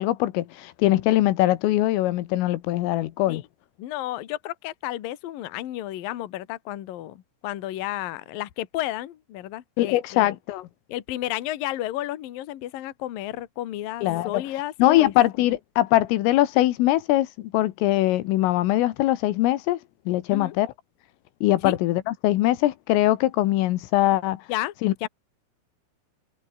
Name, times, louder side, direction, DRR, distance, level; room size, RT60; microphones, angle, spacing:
voice 1, 0.0-3.4 9.8-10.7 14.0-14.4 14.8-19.8 20.1-20.7 21.4-24.4 24.8-24.9, left 15 dB, 80° left, 3.7 m, -22 dB
voice 2, 3.8-10.3 10.9-15.1 20.3-20.6 21.6-21.8 24.5-24.7 25.0-25.1, left 14 dB, 60° left, 2.5 m, -32 dB
omnidirectional pair, 6.0 m